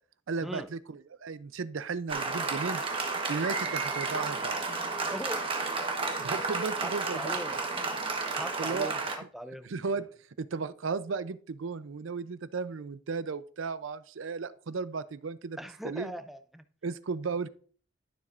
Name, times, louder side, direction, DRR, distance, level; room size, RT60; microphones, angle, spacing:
voice 1, 0.3-2.8 3.3-4.6 6.2-7.6 8.6-8.9 9.6-10.1 10.4-15.6 15.8-16.2 16.8-17.5, right 4 dB, 85° right, 15 dB, 0.5 m, -35 dB
Applause, 2.1-9.2, right 3 dB, 25° right, 1.2 m, -32 dB
voice 2, 5.1-5.4 6.7-7.6 8.4-9.0 9.3-9.7 15.6-16.6, equal, ahead, 9 dB, 0.5 m, -39 dB
12.0 x 7.2 x 2.5 m, 0.43 s
head